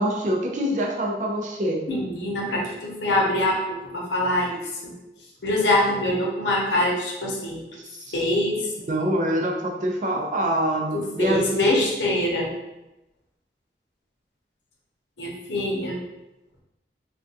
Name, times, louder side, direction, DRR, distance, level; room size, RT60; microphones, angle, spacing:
voice 1, 0.0-1.8 8.1-8.2 8.9-11.7, right 1 dB, 45° right, 0 dB, 0.4 m, -25 dB
voice 2, 1.9-4.9 5.4-7.6 8.1-8.6 10.9-12.5 15.2-16.0, left 1 dB, 90° left, -2 dB, 0.7 m, -24 dB
3.3 x 2.3 x 2.6 m, 0.97 s
head